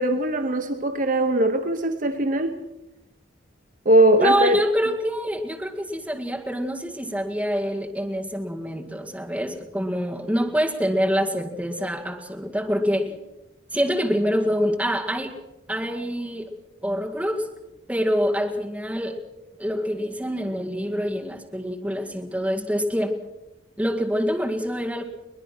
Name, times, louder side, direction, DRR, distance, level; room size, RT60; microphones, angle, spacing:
voice 1, 0.0-2.6 3.8-4.6, right 1 dB, 45° right, 0.9 m, -20 dB
voice 2, 4.2-13.2 13.7-15.4 15.7-16.5 16.8-17.5 17.9-19.2 19.6-23.1 23.8-25.0, equal, 5° right, 2.0 m, -25 dB
22.5 x 20.0 x 6.0 m
head